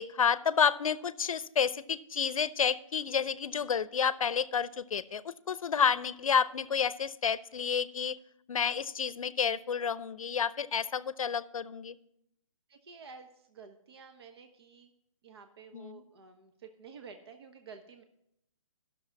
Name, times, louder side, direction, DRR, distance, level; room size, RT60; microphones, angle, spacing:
voice 1, 0.0-8.2 8.5-12.0 15.7-16.0, left 7 dB, 80° left, 17 dB, 0.6 m, -30 dB
voice 2, 12.7-14.9 15.2-18.0, right 5 dB, 50° right, 7 dB, 0.9 m, -51 dB
11.5 x 6.5 x 5.8 m, 0.76 s
hypercardioid pair, 165°, 17 cm